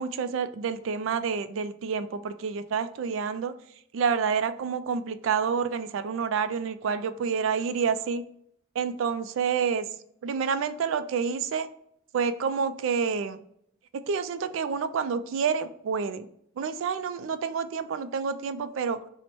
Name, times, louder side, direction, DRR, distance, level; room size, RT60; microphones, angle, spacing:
voice 1, 0.0-3.5 3.9-8.2 8.8-9.9 10.2-11.7 12.1-13.4 14.1-16.3 16.6-19.0, right 6 dB, 80° right, 11 dB, 0.3 m, -28 dB
4.4 x 2.1 x 4.2 m, 0.70 s
head